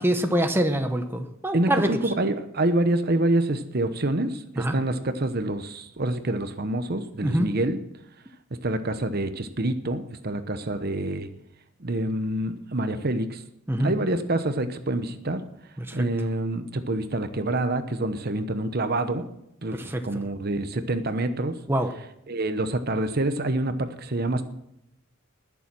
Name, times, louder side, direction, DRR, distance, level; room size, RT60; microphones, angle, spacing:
voice 1, 0.0-2.0 4.6-4.8 7.2-7.5 13.7-13.9 15.8-16.1 19.7-20.0 21.7-21.9, right 1 dB, 10° right, 6 dB, 0.9 m, -25 dB
voice 2, 1.5-7.8 8.5-11.3 11.8-13.4 13.8-15.4 15.9-19.3 19.6-21.6 22.3-24.4, right 1 dB, 50° right, 10 dB, 0.9 m, -27 dB
20.0 x 7.1 x 6.1 m, 0.80 s
head